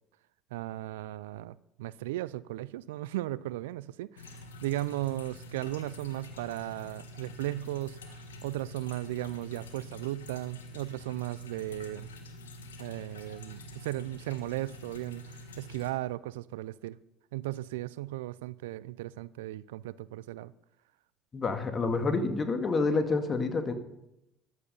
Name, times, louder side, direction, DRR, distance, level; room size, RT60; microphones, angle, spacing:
voice 1, 0.5-12.1 12.8-17.0 17.3-20.5, right 16 dB, 80° right, 0.4 m, -36 dB
sound 1, 4.2-15.9, left 1 dB, 85° left, 1.5 m, -47 dB
voice 2, 21.3-23.7, left 3 dB, 35° left, 2.2 m, -28 dB
14.0 x 11.0 x 5.5 m
hypercardioid pair, 65°, 0 cm